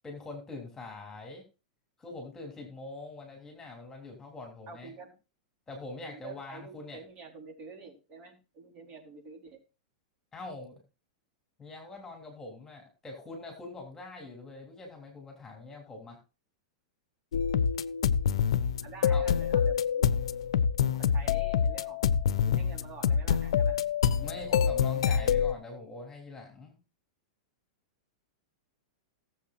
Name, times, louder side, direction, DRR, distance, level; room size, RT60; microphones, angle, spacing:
voice 1, 0.0-1.4 2.0-4.9 5.7-7.0 10.3-10.8 11.6-16.2 19.1-19.3 24.2-26.8, left 2 dB, 15° left, 1 dB, 3.3 m, -43 dB
voice 2, 4.7-5.1 6.1-9.6 18.8-20.1 20.8-22.0 22.4-23.8, right 5 dB, 35° right, 2 dB, 4.2 m, -48 dB
sound 1, 17.3-25.5, left 7 dB, 65° left, 0.7 m, -26 dB
18.5 x 7.6 x 2.6 m, 0.31 s
figure-of-eight pair, 100°, 3 cm